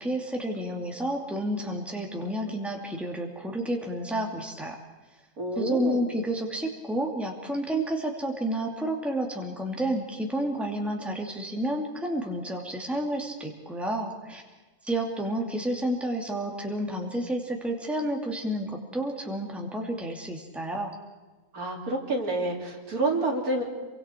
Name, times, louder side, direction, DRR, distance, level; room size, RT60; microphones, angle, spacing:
voice 1, 0.0-4.8 5.6-14.4 14.8-20.9, right 1 dB, ahead, 1 dB, 2.4 m, -30 dB
voice 2, 5.4-6.0 21.5-23.6, right 2 dB, 70° right, 0 dB, 3.4 m, -28 dB
29.0 x 23.5 x 4.5 m, 1.2 s
omnidirectional pair, 1.6 m